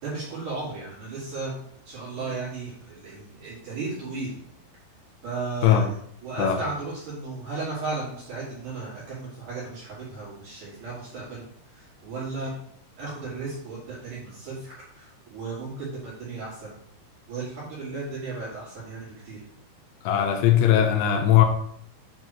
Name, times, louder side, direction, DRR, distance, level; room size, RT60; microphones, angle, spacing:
voice 1, 0.0-1.5 1.8-4.4 5.2-5.8 6.2-11.4 11.7-12.5 13.0-16.7 17.3-19.4, right 3 dB, 50° right, -8 dB, 3.0 m, -35 dB
voice 2, 20.0-21.5, left 10 dB, 85° left, 5 dB, 3.2 m, -19 dB
8.8 x 3.9 x 3.1 m, 0.67 s
omnidirectional pair, 5.8 m